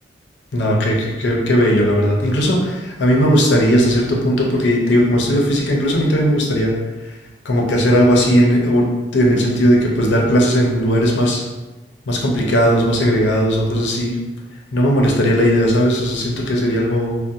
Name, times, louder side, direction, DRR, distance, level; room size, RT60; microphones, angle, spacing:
voice 1, 0.5-6.8 7.0-7.2 7.4-11.4 12.1-14.2 14.7-17.2, equal, 85° left, -1 dB, 0.5 m, -17 dB
2.5 x 2.0 x 2.6 m, 1.2 s
head